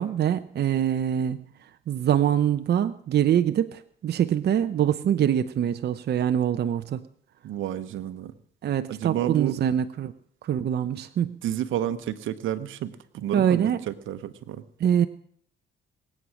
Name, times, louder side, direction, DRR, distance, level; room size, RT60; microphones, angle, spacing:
voice 1, 0.0-1.4 1.9-7.0 8.6-10.1 10.4-11.4 13.3-13.8 14.8-15.1, right 9 dB, 55° right, 9 dB, 0.7 m, -24 dB
voice 2, 7.4-8.3 8.9-9.5 11.4-14.6, right 11 dB, 80° right, 12 dB, 1.1 m, -30 dB
21.0 x 8.6 x 6.3 m, 0.63 s
cardioid pair, 90°, 20 cm